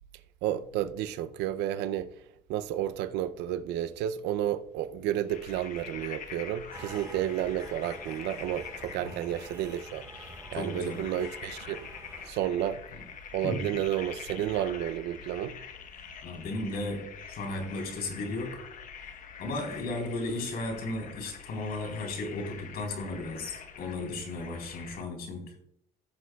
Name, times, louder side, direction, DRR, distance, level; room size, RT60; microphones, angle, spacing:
voice 1, 0.4-2.1 2.5-11.9 12.3-12.8 13.3-15.6, right 11 dB, 90° right, 0.6 m, -31 dB
sound 1, 5.3-25.0, left 7 dB, 50° left, 1.2 m, -45 dB
sound 2, 6.7-12.3, right 2 dB, 15° right, 4.4 m, -48 dB
voice 2, 10.5-11.0 12.9-13.0 13.4-13.7 16.2-18.6 19.4-25.5, left 2 dB, 65° left, 3.9 m, -35 dB
15.5 x 8.3 x 2.3 m
cardioid pair, 110°, 17 cm